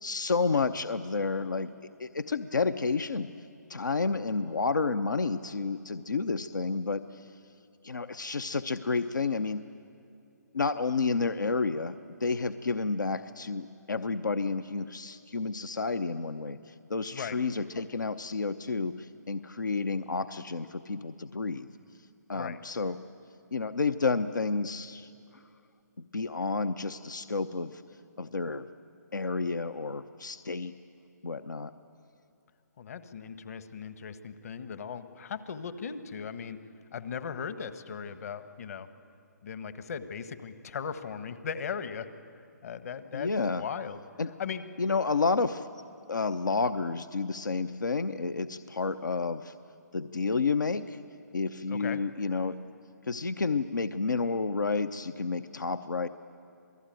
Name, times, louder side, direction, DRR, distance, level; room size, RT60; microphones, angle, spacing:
voice 1, 0.0-1.7 2.0-3.3 3.7-7.3 7.8-9.7 10.5-21.7 22.3-23.0 23.5-25.1 26.1-27.8 28.2-28.7 29.1-30.7 31.2-31.7 43.1-43.6 44.2-44.3 44.8-45.7 46.1-49.5 49.9-51.0 51.3-52.6 53.1-56.1, left 4 dB, 85° left, 11 dB, 0.8 m, -30 dB
voice 2, 32.8-36.6 36.9-38.9 39.4-42.1 42.6-43.3 43.6-44.0 44.4-44.6 51.7-52.0, left 6 dB, 55° left, 11 dB, 1.4 m, -38 dB
27.5 x 19.0 x 9.1 m, 2.5 s
figure-of-eight pair, 145°, 10 cm